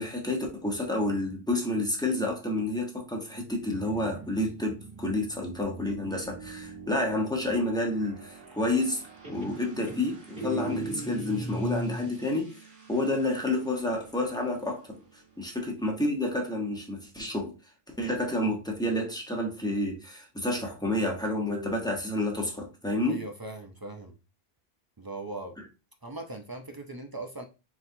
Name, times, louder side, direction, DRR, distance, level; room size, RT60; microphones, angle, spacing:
voice 1, 0.0-9.0 9.3-12.6 12.9-15.0 15.4-17.5 18.0-23.2, left 1 dB, 5° left, 0.9 m, -29 dB
Guitar, 3.5-7.1 8.6-9.0 9.2-12.2, right 2 dB, 55° right, 2.1 m, -39 dB
sound 1, 5.1-16.8, right 6 dB, 75° right, 1.8 m, -50 dB
voice 2, 23.0-24.2 25.0-25.6 26.0-27.4, right 2 dB, 35° right, 0.4 m, -39 dB
4.2 x 4.0 x 2.7 m
omnidirectional pair, 1.0 m